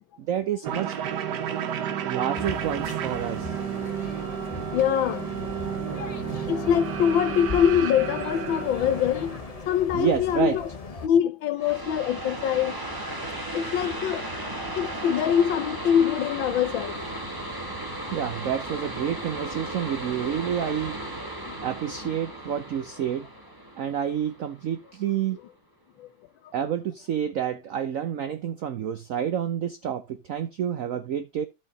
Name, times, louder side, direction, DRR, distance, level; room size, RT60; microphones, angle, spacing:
voice 1, 0.2-1.0 2.0-3.5 9.9-10.6 18.1-23.3 23.8-25.4 26.5-31.5, right 9 dB, 80° right, 0.7 m, -29 dB
sound 1, 0.6-9.6, right 9 dB, 65° right, 1.4 m, -32 dB
sound 2, 2.3-11.1, left 3 dB, 40° left, 0.5 m, -38 dB
voice 2, 4.0-5.3 6.5-9.4 9.7-10.7 11.0-12.7 13.4-17.1 17.4-17.5 21.5-21.6 26.0-26.1, left 9 dB, 75° left, 1.6 m, -24 dB
sound 3, 11.6-25.0, right 1 dB, 10° right, 1.4 m, -35 dB
12.5 x 4.9 x 3.8 m
omnidirectional pair, 2.2 m